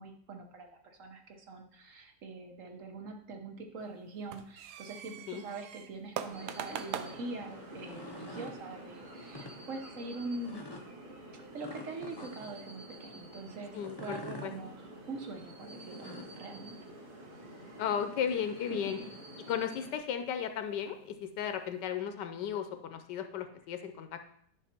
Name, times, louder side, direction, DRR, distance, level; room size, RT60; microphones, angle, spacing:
voice 1, 0.0-10.7 11.3-16.8 18.7-19.1, right 3 dB, 55° right, 4 dB, 1.2 m, -43 dB
sound 1, 3.8-21.8, right 9 dB, 75° right, 1.2 m, -49 dB
sound 2, 6.3-20.0, right 1 dB, 30° right, 1.8 m, -49 dB
sound 3, 7.6-8.6 9.2-9.5 10.4-10.8 11.6-12.6 13.8-14.5 15.7-16.4, left 2 dB, 40° left, 0.3 m, -46 dB
voice 2, 13.7-14.5 17.8-19.0 19.5-24.3, left 8 dB, 80° left, 8 dB, 1.3 m, -35 dB
10.0 x 5.6 x 4.3 m, 0.66 s
omnidirectional pair, 1.9 m